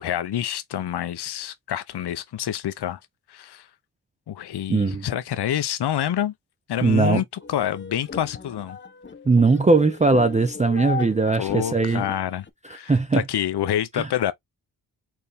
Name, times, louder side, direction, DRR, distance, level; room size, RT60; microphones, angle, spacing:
voice 1, 0.0-3.0 3.3-3.7 4.3-6.3 6.7-8.8 11.4-14.3, left 10 dB, 65° left, 0.7 m, -27 dB
voice 2, 4.7-5.0 6.8-7.2 9.3-12.0 12.9-13.2 13.9-14.1, right 3 dB, 15° right, 0.5 m, -19 dB
sound 1, 7.4-12.5, left 5 dB, 25° left, 0.7 m, -37 dB
4.5 x 3.3 x 3.4 m
cardioid pair, 75°, 43 cm